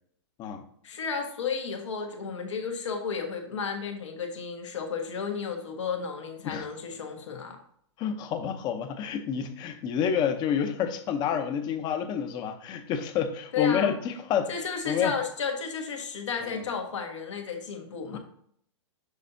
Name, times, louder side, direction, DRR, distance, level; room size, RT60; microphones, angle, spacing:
voice 1, 0.8-7.6 13.5-13.9 14.5-18.2, left 5 dB, 85° left, 1.5 m, -33 dB
voice 2, 8.0-14.5 14.9-15.1 16.5-16.6 18.1-18.2, left 8 dB, 30° left, 0.7 m, -29 dB
6.5 x 5.6 x 2.7 m
hypercardioid pair, 135°, 15 cm